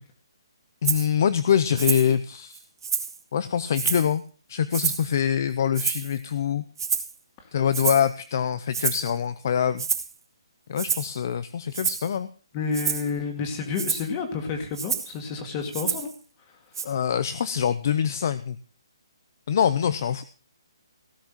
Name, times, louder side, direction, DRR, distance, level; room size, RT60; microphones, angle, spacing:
voice 1, 0.8-2.6 3.3-4.2 4.5-6.6 7.5-9.8 10.7-12.3 16.8-18.6 19.5-20.2, left 8 dB, 35° left, 14 dB, 0.6 m, -24 dB
Rattle (instrument), 0.8-1.1 1.8-2.1 2.5-3.2 3.7-4.1 4.7-5.1 5.7-6.2 6.8-7.1 7.7-8.1 8.7-9.1 9.8-10.1 10.8-11.2 11.7-12.1 12.7-13.1 13.7-14.1 14.7-15.1 15.7-16.1 16.7-16.8, right 6 dB, 50° right, 2.8 m, -28 dB
voice 2, 12.5-16.1, left 5 dB, 20° left, 5 dB, 2.0 m, -30 dB
17.0 x 6.1 x 7.4 m, 0.39 s
hypercardioid pair, 175°, 3 cm